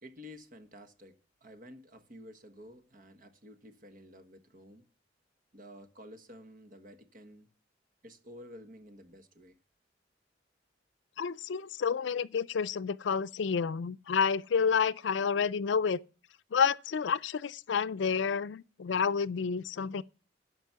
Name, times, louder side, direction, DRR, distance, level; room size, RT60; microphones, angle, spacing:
voice 1, 0.0-4.9 5.5-7.5 8.0-9.6, equal, 50° right, 1.3 m, -51 dB
voice 2, 11.2-16.0 16.5-20.0, left 6 dB, 75° left, 0.4 m, -29 dB
12.0 x 5.2 x 6.8 m
head